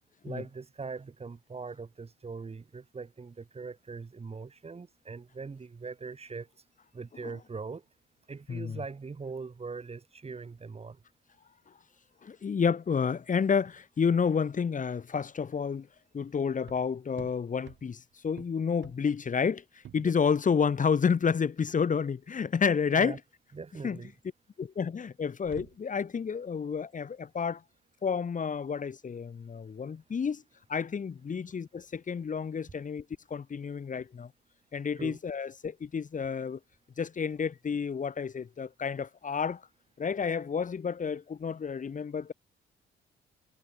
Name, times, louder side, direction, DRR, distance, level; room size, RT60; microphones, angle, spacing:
voice 1, 0.2-6.5 6.9-7.8 8.3-11.0 20.0-20.1 22.9-23.2 23.5-24.1 35.0-35.2, right 4 dB, 30° right, 3.7 m, -41 dB
voice 2, 12.2-15.9 16.1-23.2 23.8-24.0 24.6-27.6 28.0-30.4 30.7-34.3 34.7-36.6 37.0-39.6 40.0-42.3, left 6 dB, 40° left, 2.3 m, -30 dB
sound 1, 13.9-32.0, right 11 dB, 70° right, 4.6 m, -56 dB
cardioid pair, 90°, 20 cm